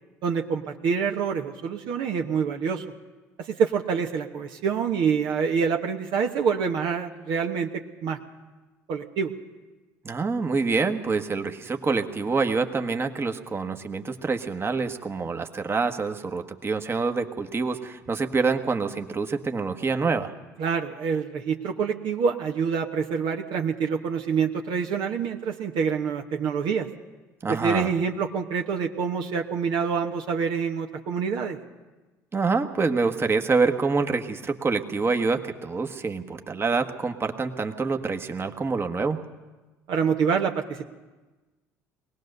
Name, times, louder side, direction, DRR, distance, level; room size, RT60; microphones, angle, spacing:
voice 1, 0.2-2.8 3.4-8.2 8.9-9.3 20.6-26.9 27.5-31.6 39.9-40.9, right 6 dB, 60° right, 2 dB, 1.3 m, -26 dB
voice 2, 10.0-20.3 27.4-27.9 32.3-39.2, right 4 dB, 25° right, 6 dB, 1.5 m, -26 dB
22.0 x 18.5 x 6.7 m, 1.2 s
hypercardioid pair, 60°, 9 cm